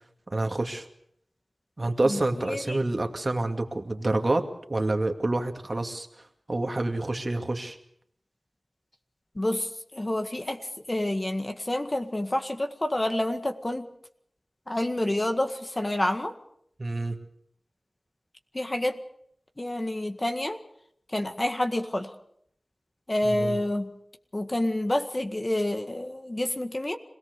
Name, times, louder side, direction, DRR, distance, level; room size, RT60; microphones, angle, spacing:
voice 1, 0.3-0.9 1.8-6.1 6.5-7.8 16.8-17.2 23.2-23.6, right 2 dB, 40° right, 5 dB, 2.4 m, -28 dB
voice 2, 2.0-2.8 9.4-13.9 14.7-16.4 18.5-19.0 19.6-20.6 21.1-22.1 23.1-23.9 24.3-27.0, left 1 dB, 30° left, 6 dB, 1.9 m, -28 dB
26.5 x 18.0 x 6.7 m, 0.70 s
wide cardioid pair, 60°, 0 cm